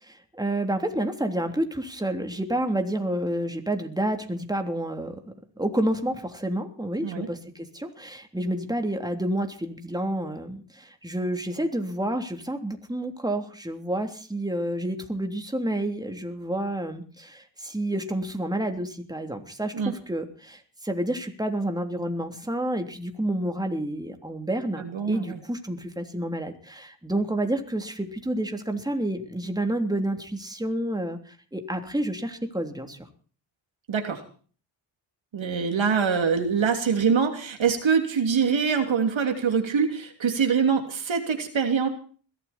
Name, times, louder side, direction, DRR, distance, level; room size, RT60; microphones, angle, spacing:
voice 1, 0.0-5.2 5.6-33.1, right 1 dB, 10° right, 5 dB, 3.3 m, -29 dB
voice 2, 24.8-25.4 33.9-34.2 35.3-41.9, right 6 dB, 65° right, 5 dB, 3.1 m, -24 dB
21.5 x 14.5 x 4.4 m, 0.42 s
cardioid pair, 65°, 49 cm